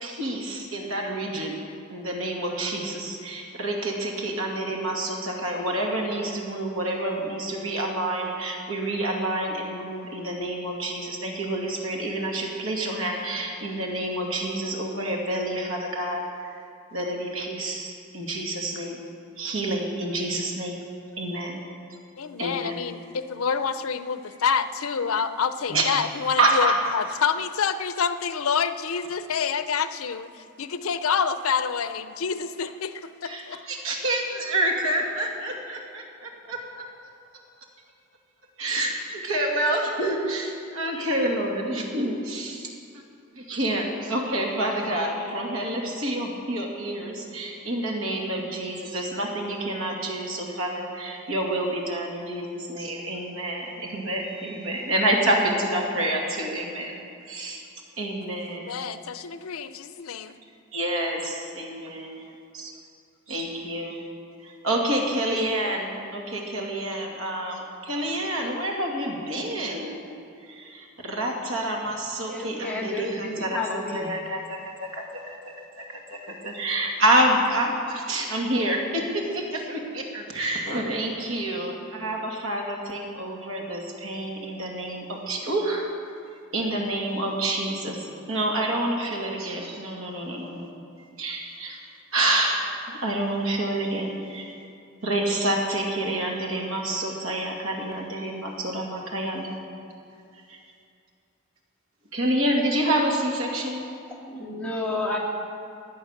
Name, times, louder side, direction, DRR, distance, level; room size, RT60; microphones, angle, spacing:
voice 1, 0.0-1.6 1.9-16.6 16.9-19.0 19.4-20.8 21.2-21.6 22.4-22.8 25.7-26.0 26.4-26.8 33.2-36.8 38.6-43.1 43.3-57.0 57.3-57.6 58.0-58.8 60.7-62.7 63.3-64.0 64.4-70.0 70.4-75.8 76.1-85.9 86.5-90.7 91.2-94.6 95.0-99.6 100.5-100.6 102.1-103.8, right 1 dB, 70° right, 0 dB, 2.3 m, -28 dB
voice 2, 22.2-30.3 30.6-33.6 58.6-60.3, left 6 dB, 80° left, 12 dB, 0.6 m, -27 dB
voice 3, 72.3-74.1 104.3-105.2, left 2 dB, 5° left, -4 dB, 2.2 m, -30 dB
15.5 x 10.0 x 6.6 m, 2.5 s
head